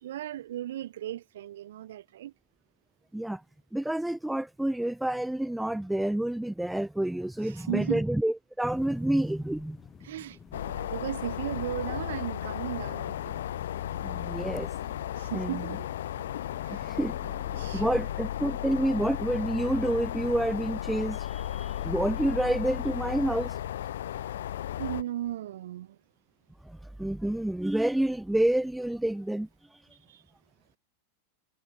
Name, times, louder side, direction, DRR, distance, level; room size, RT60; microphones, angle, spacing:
voice 1, 0.0-2.3 7.4-8.0 10.0-13.4 15.2-15.9 16.6-16.9 17.2-18.1 24.8-26.0 30.1-30.2, right 12 dB, 60° right, 0.7 m, -36 dB
voice 2, 3.7-9.8 14.0-14.7 15.3-15.6 16.9-17.1 17.7-23.6 26.7-29.5, right 1 dB, 5° right, 0.3 m, -28 dB
sound 1, 8.7-9.9, left 2 dB, 85° left, 5.1 m, -59 dB
sound 2, 8.7-17.9, left 9 dB, 25° left, 3.6 m, -52 dB
sound 3, 10.5-25.0, left 11 dB, 60° left, 0.5 m, -34 dB
figure-of-eight pair, 90°, 0 cm